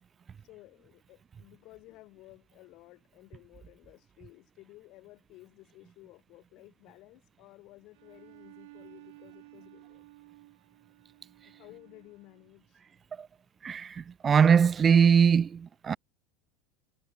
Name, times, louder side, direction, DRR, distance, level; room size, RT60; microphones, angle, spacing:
voice 1, 0.4-10.0 11.5-12.8, left 19 dB, 45° left, 5.2 m, -55 dB
Bowed string instrument, 7.9-12.6, right 21 dB, 70° right, 7.2 m, -55 dB
voice 2, 13.6-16.0, right 7 dB, 20° right, 0.3 m, -22 dB
supercardioid pair, 160°, 0 cm